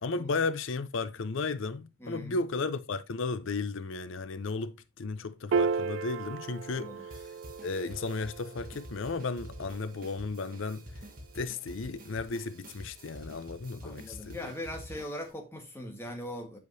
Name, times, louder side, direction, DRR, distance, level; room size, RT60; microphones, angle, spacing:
voice 1, 0.0-6.9 7.6-10.8 11.3-14.4, left 3 dB, 60° left, 0.5 m, -34 dB
voice 2, 2.0-2.4 6.7-7.0 13.8-16.6, left 1 dB, 10° left, 1.5 m, -40 dB
Piano, 5.5-12.1, right 5 dB, 60° right, 0.3 m, -36 dB
sound 1, 7.1-15.3, equal, 40° right, 1.6 m, -48 dB
9.3 x 5.1 x 2.7 m
head